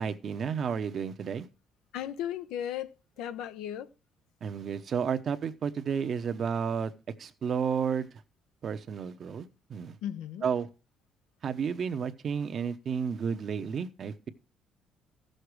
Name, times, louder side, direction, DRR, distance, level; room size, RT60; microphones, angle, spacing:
voice 1, 0.0-1.5 4.4-6.9 7.2-8.1 8.6-9.4 9.7-10.0 10.4-10.7 11.4-14.3, right 6 dB, 45° right, 0.9 m, -31 dB
voice 2, 1.9-3.9 10.0-10.5, left 10 dB, 90° left, 0.7 m, -36 dB
14.0 x 6.6 x 4.8 m
cardioid pair, 125°, 0 cm